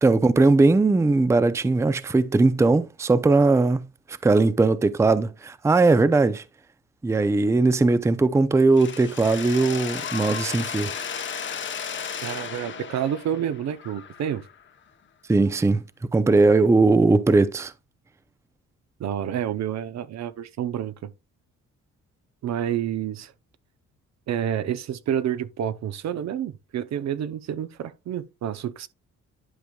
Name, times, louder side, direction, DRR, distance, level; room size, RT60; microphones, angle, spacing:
voice 1, 0.0-6.4 7.0-10.9 15.3-15.8 16.1-17.7, right 3 dB, 10° right, 0.5 m, -19 dB
Mechanisms, 8.8-14.6, left 7 dB, 40° left, 0.9 m, -34 dB
voice 2, 12.2-14.4 19.0-21.1 22.4-23.3 24.3-28.9, right 10 dB, 60° right, 0.7 m, -29 dB
11.0 x 5.0 x 2.3 m
cardioid pair, 90°, 30 cm